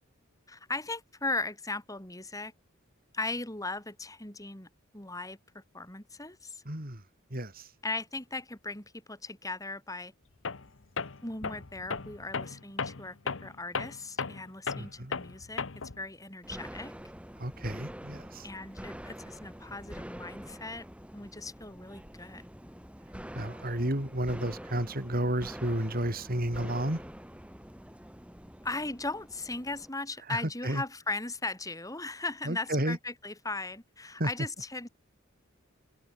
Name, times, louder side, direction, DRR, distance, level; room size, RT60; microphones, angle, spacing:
voice 1, 0.5-2.5 3.1-4.7 4.9-6.6 7.8-10.1 11.2-15.7 16.0-16.9 18.4-20.9 21.1-22.4 28.6-34.9, left 2 dB, 15° left, 5.0 m, -38 dB
voice 2, 6.7-7.0 7.3-7.7 14.7-15.1 17.4-18.5 23.4-27.0 30.3-30.8 32.5-33.0 34.2-34.3, right 1 dB, 45° right, 5.2 m, -32 dB
Tools, 10.5-10.7 11.0-16.0, left 5 dB, 65° left, 1.1 m, -35 dB
sound 1, 16.4-29.9, equal, 5° right, 5.9 m, -46 dB
head